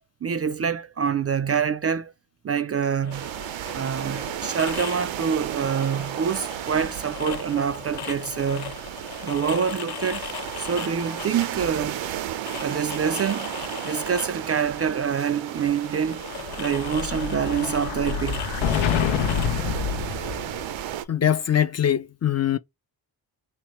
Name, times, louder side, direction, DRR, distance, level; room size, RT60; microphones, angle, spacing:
voice 1, 0.2-2.1 2.4-3.3 3.7-8.8 9.2-10.3 10.6-12.0 12.6-13.5 13.8-16.2 16.6-18.5, right 7 dB, 35° right, 0.4 m, -26 dB
sound 1, 3.0-20.6, left 9 dB, 55° left, 0.8 m, -39 dB
sound 2, 3.1-21.0, right 11 dB, 80° right, 0.6 m, -34 dB
Explosion, 16.2-20.8, left 8 dB, 85° left, 0.6 m, -27 dB
voice 2, 21.1-22.6, left 9 dB, 35° left, 0.5 m, -22 dB
3.4 x 2.9 x 3.0 m
supercardioid pair, 50°, 45 cm